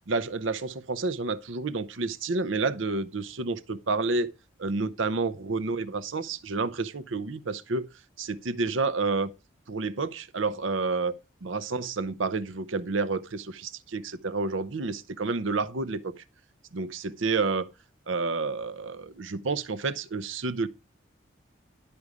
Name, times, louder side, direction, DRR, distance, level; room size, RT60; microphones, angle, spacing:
voice 1, 0.1-4.3 4.6-7.9 8.2-9.3 9.7-11.1 11.4-16.1 16.7-17.7 18.1-20.7, right 3 dB, 75° right, 0.7 m, -29 dB
11.0 x 5.2 x 4.8 m
head